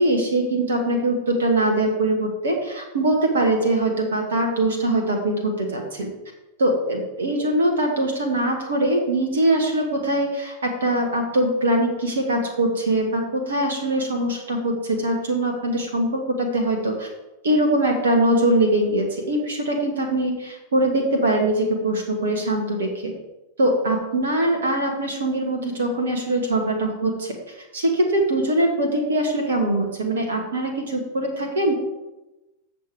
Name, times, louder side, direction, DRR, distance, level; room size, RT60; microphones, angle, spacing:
voice 1, 0.0-6.1 6.6-17.1 17.4-23.1 23.6-31.7, right 1 dB, 65° right, 2 dB, 1.3 m, -22 dB
7.9 x 6.7 x 4.6 m, 1.0 s
figure-of-eight pair, 90°, 0 cm